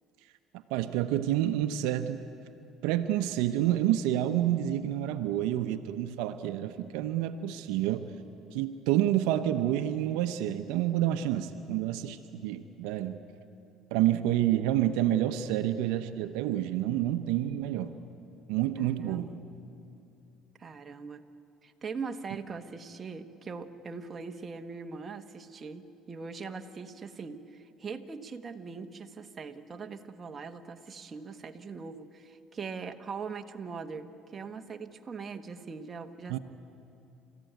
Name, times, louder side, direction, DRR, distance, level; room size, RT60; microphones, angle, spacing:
voice 1, 0.7-2.2 2.8-8.1 8.5-13.2 13.9-17.9 18.5-19.3 36.3-36.4, right 12 dB, 85° right, 9 dB, 0.9 m, -28 dB
voice 2, 18.8-19.4 20.6-21.3 21.6-36.4, right 5 dB, 30° right, 6 dB, 1.3 m, -41 dB
30.0 x 14.5 x 9.3 m, 2.7 s
supercardioid pair, 95°, 0 cm